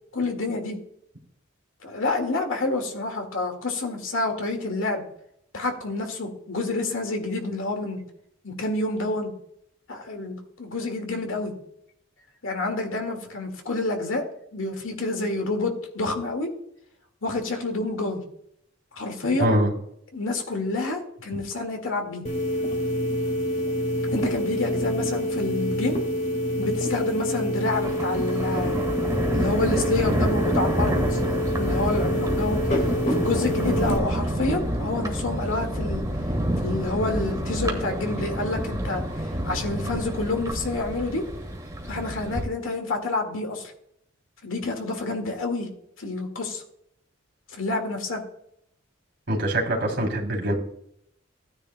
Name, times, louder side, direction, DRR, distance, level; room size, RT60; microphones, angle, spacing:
voice 1, 0.1-0.8 1.8-5.0 5.5-8.0 8.4-9.3 9.9-11.5 12.4-14.2 14.5-16.5 17.2-18.2 18.9-19.5 20.1-22.2 24.1-26.0 26.6-28.8 29.3-31.2 31.5-32.6 33.1-36.0 36.6-39.0 39.4-41.2 41.9-43.7 44.4-45.7 46.0-46.6 47.5-48.2, left 2 dB, 70° left, 4 dB, 1.9 m, -28 dB
voice 2, 19.3-19.7 49.3-50.5, right 1 dB, 55° right, -1 dB, 3.0 m, -24 dB
sound 1, 22.2-34.0, equal, 35° left, 1.5 m, -27 dB
Thunder, 27.7-42.4, equal, 15° right, 1.5 m, -28 dB
15.0 x 9.7 x 2.2 m, 0.73 s
head